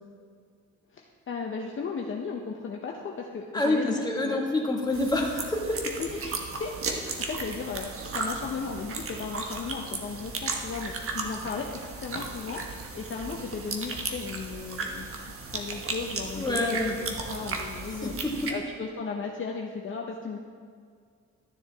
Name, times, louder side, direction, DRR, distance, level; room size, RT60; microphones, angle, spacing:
voice 1, 0.9-4.4 6.0-11.7 12.0-16.8 17.3-18.1 18.5-20.4, left 5 dB, 40° left, 0 dB, 0.8 m, -36 dB
voice 2, 3.5-5.9 16.3-16.9 17.9-18.5, left 2 dB, 15° left, -1 dB, 1.8 m, -27 dB
sound 1, 4.9-18.5, right 4 dB, 45° right, 1.3 m, -35 dB
13.0 x 7.0 x 3.5 m, 2.1 s
cardioid pair, 90°, 30 cm